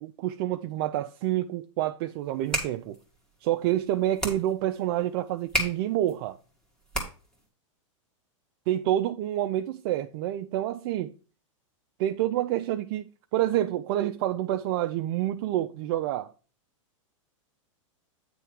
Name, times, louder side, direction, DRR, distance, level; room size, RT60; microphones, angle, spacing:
voice 1, 0.0-3.0 3.4-6.4 8.7-11.1 12.0-16.3, right 13 dB, 45° right, 0.5 m, -28 dB
sound 1, 2.2-7.5, equal, 5° left, 1.8 m, -35 dB
9.1 x 3.3 x 6.3 m
hypercardioid pair, 140°, 17 cm